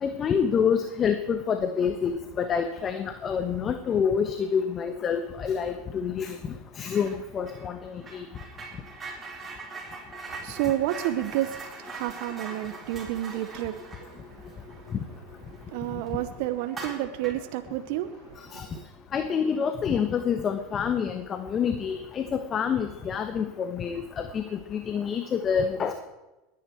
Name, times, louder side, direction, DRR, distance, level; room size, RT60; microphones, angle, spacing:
voice 1, 0.0-6.4 6.8-8.3 18.5-18.7 19.1-24.4 24.7-25.9, left 7 dB, 35° left, 1.1 m, -27 dB
sound 1, 6.9-7.2 7.5-15.6 16.0-16.1 16.6-17.5, right 4 dB, 25° right, 4.4 m, -42 dB
voice 2, 10.3-15.0 15.5-18.8, right 13 dB, 65° right, 0.8 m, -31 dB
21.0 x 9.9 x 4.6 m
hypercardioid pair, 95°, 0 cm